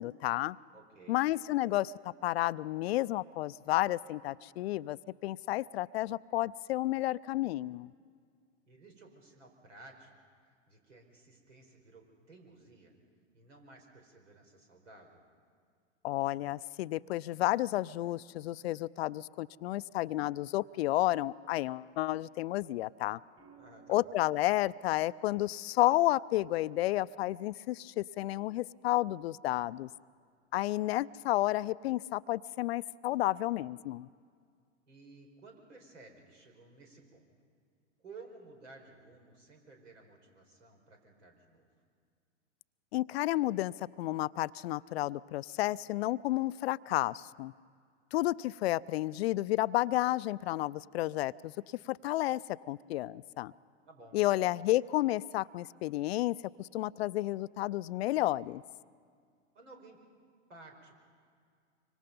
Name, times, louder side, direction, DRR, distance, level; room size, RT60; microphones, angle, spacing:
voice 1, 0.0-0.6 1.1-7.9 16.0-23.2 23.9-29.9 30.5-34.1 42.9-47.5 48.1-51.5 51.9-52.4 52.7-53.5 54.1-58.6, left 16 dB, 60° left, 18 dB, 0.5 m, -31 dB
voice 2, 0.7-1.2 8.7-10.1 10.7-12.9 13.3-15.2 23.5-24.1 34.9-37.2 38.0-41.7 53.8-54.2 59.5-60.0 60.5-60.9, right 3 dB, 80° right, 3 dB, 4.9 m, -55 dB
sound 1, 23.4-27.5 29.2-29.6, right 5 dB, 40° right, 6.8 m, -63 dB
25.0 x 24.5 x 5.4 m, 2.1 s
hypercardioid pair, 100°, 36 cm